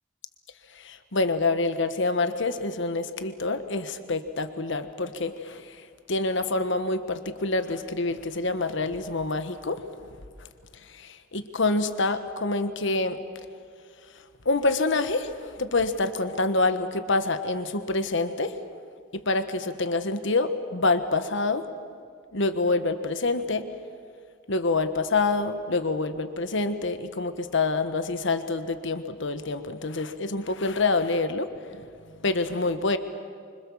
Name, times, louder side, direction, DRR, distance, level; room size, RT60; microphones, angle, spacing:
voice 1, 0.7-9.8 10.9-13.2 14.4-18.6 19.1-21.7 22.3-23.7 24.5-31.5 31.8-31.9 32.2-33.0, left 3 dB, 65° left, 10 dB, 1.4 m, -27 dB
26.0 x 25.5 x 7.3 m, 2.1 s
head